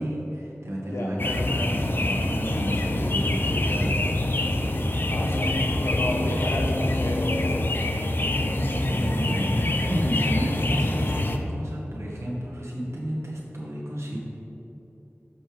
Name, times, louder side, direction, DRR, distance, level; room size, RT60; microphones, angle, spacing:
voice 1, 0.0-4.1 8.5-9.5 9.9-14.2, equal, 90° right, -4 dB, 1.8 m, -32 dB
sound 1, 1.2-11.4, left 1 dB, 50° left, 0.6 m, -25 dB
voice 2, 5.1-8.0, left 1 dB, 80° left, -1 dB, 1.2 m, -32 dB
12.0 x 5.6 x 3.5 m, 3.0 s
wide cardioid pair, 55°, 5 cm